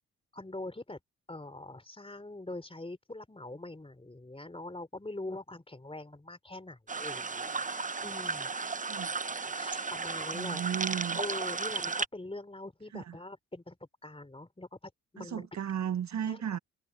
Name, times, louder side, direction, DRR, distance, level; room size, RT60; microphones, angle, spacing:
voice 1, 0.3-1.0 1.3-7.7 8.0-8.5 9.5-13.8 14.0-14.8 15.1-15.5 16.3-16.6, left 2 dB, 15° left, 3.7 m, -43 dB
sound 1, 6.9-12.1, right 4 dB, 20° right, 1.1 m, -34 dB
voice 2, 10.3-11.2 12.9-13.2 15.2-16.6, right 9 dB, 50° right, 1.2 m, -35 dB
hypercardioid pair, 40°, 37 cm